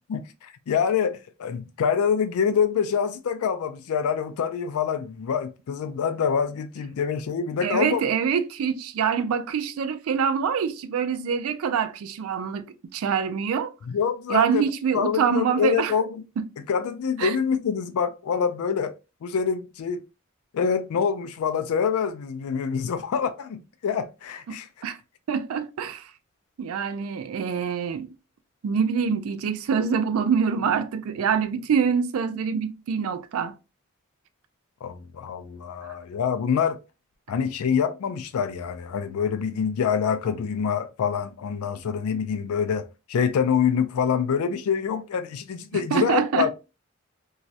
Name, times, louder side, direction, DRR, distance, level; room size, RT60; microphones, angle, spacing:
voice 1, 0.1-8.0 13.9-14.6 14.9-16.2 16.7-18.9 19.2-20.0 20.5-24.7 34.8-36.8 37.3-46.5, left 7 dB, 90° left, 0.4 m, -26 dB
voice 2, 7.6-13.7 14.3-15.9 16.4-16.5 17.2-17.4 24.5-25.0 25.3-26.1 26.6-28.1 28.6-33.6 45.9-46.5, right 6 dB, 80° right, 0.3 m, -25 dB
2.3 x 2.0 x 2.6 m
head